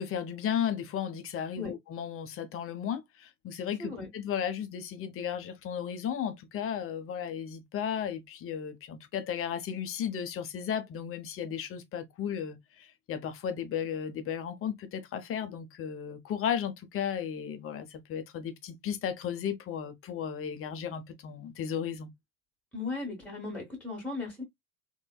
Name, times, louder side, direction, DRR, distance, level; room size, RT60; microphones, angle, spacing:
voice 1, 0.0-22.1, left 8 dB, 30° left, 0.6 m, -34 dB
voice 2, 22.7-24.4, left 3 dB, 5° left, 1.4 m, -36 dB
3.2 x 2.2 x 2.2 m
hypercardioid pair, 75°, 43 cm